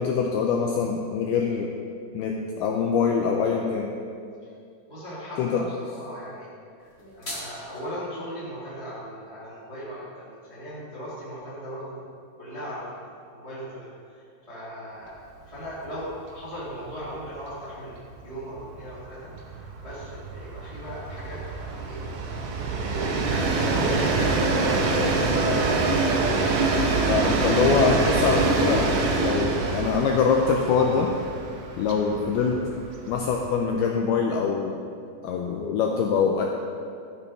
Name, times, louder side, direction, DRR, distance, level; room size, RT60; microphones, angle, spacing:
voice 1, 0.0-1.7 2.1-3.9 5.4-5.7 27.1-31.1 31.8-32.7 33.1-34.8 35.2-36.5, left 5 dB, 85° left, 1 dB, 2.2 m, -24 dB
voice 2, 4.9-6.5 6.8-12.0 12.4-24.6, equal, 20° right, -9 dB, 0.9 m, -38 dB
sound 1, 6.8-7.8, left 1 dB, 50° left, 0.7 m, -38 dB
Train, 15.5-15.7 16.0-16.1 16.4-33.8, right 3 dB, 90° right, 1.8 m, -25 dB
12.0 x 7.5 x 4.9 m, 2.4 s
omnidirectional pair, 5.1 m